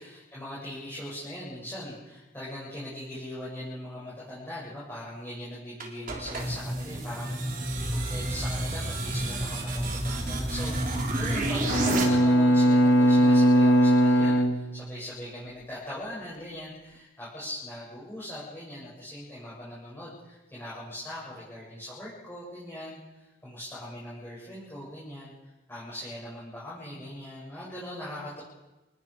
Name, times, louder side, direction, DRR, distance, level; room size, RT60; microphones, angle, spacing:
voice 1, 0.0-25.3 25.7-28.4, left 1 dB, 10° left, -9 dB, 7.7 m, -40 dB
sound 1, 5.8-12.0, right 1 dB, 45° right, 4.1 m, -30 dB
Bowed string instrument, 11.7-15.2, equal, 65° left, 1.7 m, -20 dB
28.5 x 20.0 x 5.1 m, 1.1 s
head